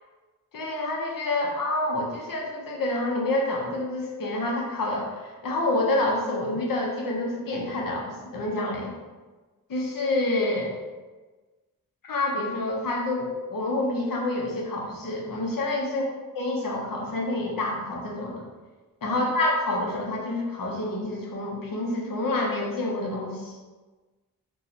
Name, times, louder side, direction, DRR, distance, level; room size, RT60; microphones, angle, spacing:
voice 1, 0.5-8.9 9.7-10.7 12.0-16.0 16.3-18.5 19.0-23.5, left 2 dB, 70° left, -1 dB, 0.7 m, -28 dB
2.8 x 2.3 x 3.9 m, 1.3 s
wide cardioid pair, 125°, 35 cm